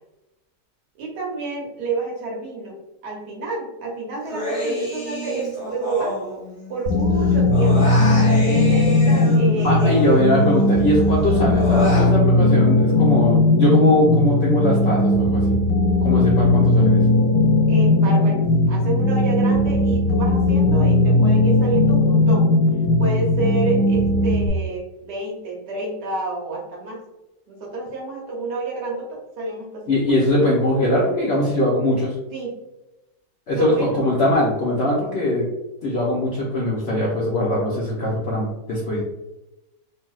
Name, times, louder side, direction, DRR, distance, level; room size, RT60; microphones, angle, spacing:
voice 1, 1.0-2.7 3.0-6.3 6.7-8.0 8.4-10.1 17.7-22.5 23.0-27.0 27.5-30.2 32.3-32.5 33.5-34.1, right 3 dB, 70° right, -2 dB, 1.3 m, -29 dB
Human voice, 4.2-6.9 7.2-10.7 11.0-12.1, left 1 dB, 25° left, 0.7 m, -29 dB
sound 1, 6.9-24.5, left 2 dB, 90° left, 1.3 m, -17 dB
voice 2, 9.6-15.6 16.0-17.1 29.9-32.2 33.5-35.5 35.8-39.0, left 1 dB, 75° left, -4 dB, 0.5 m, -21 dB
3.3 x 2.7 x 2.3 m, 0.98 s
omnidirectional pair, 1.9 m